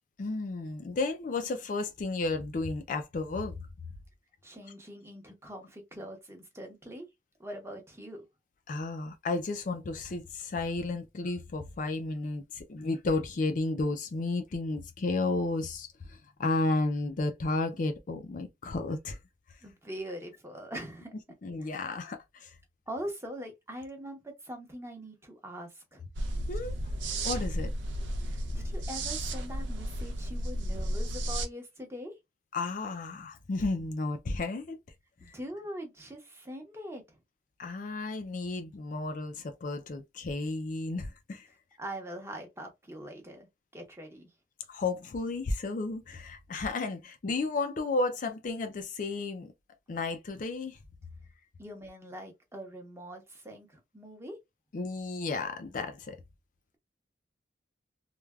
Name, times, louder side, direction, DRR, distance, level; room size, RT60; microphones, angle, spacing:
voice 1, 0.2-3.6 8.7-19.2 21.4-22.5 26.5-26.9 27.2-27.7 32.5-34.8 35.3-35.4 37.6-41.5 44.7-49.5 49.9-50.8 54.7-56.2, left 3 dB, 45° left, 0.4 m, -33 dB
voice 2, 4.4-7.1 7.4-8.2 19.6-21.1 21.6-21.8 22.9-26.0 28.2-32.1 35.2-37.2 41.8-43.5 43.7-44.3 51.6-54.4, equal, 15° right, 0.8 m, -42 dB
sound 1, 26.1-31.5, right 1 dB, 90° right, 0.6 m, -33 dB
3.2 x 2.2 x 2.3 m
head